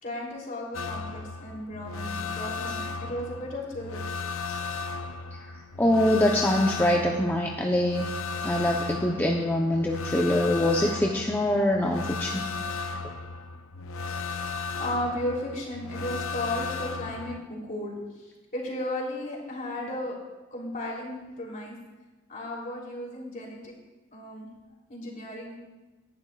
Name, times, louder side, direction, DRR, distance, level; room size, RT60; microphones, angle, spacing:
voice 1, 0.0-4.1 14.7-18.1 18.5-20.1 20.5-21.8 22.3-23.7 24.1-24.5 24.9-25.6, left 1 dB, 40° left, -2 dB, 3.3 m, -34 dB
sound 1, 0.7-17.4, left 4 dB, 85° left, 0.6 m, -35 dB
voice 2, 5.8-8.1 8.4-12.4, left 1 dB, 10° left, -1 dB, 0.7 m, -24 dB
18.0 x 11.0 x 2.4 m, 1.2 s
head